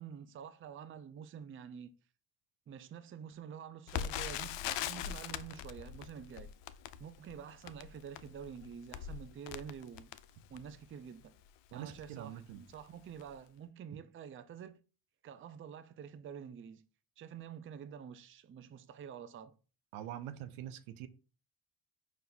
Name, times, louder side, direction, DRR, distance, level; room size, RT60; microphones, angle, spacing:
voice 1, 0.0-1.9 2.7-6.5 7.0-10.1 10.5-11.3 11.7-14.8 15.2-16.8 17.2-19.5, right 8 dB, 25° right, 0.4 m, -48 dB
Crackle, 3.9-10.8 11.5-11.6 11.9-12.1 12.7-12.9 13.2-13.3, left 10 dB, 65° left, 0.5 m, -41 dB
voice 2, 11.7-12.6 19.9-21.1, right 11 dB, 80° right, 0.6 m, -44 dB
4.4 x 2.5 x 3.8 m
supercardioid pair, 55°, 49 cm